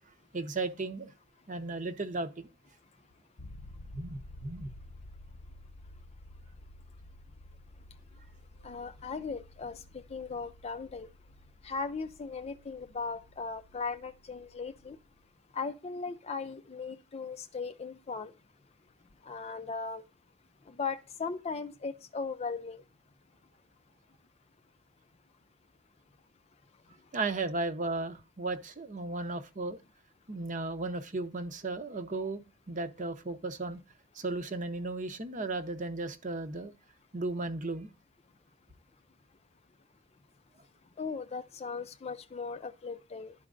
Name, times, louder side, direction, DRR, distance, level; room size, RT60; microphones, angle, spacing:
voice 1, 0.3-1.1 1.5-2.5 3.9-4.7 27.1-29.8 30.3-33.8 34.1-36.7 37.1-37.9, right 3 dB, 40° right, 0.8 m, -35 dB
sound 1, 3.4-15.3, left 1 dB, 90° left, 0.8 m, -52 dB
voice 2, 8.6-11.1 11.6-15.0 15.5-18.3 19.3-20.0 20.7-22.8 41.0-43.3, left 4 dB, 30° left, 0.4 m, -38 dB
12.0 x 4.4 x 2.5 m
head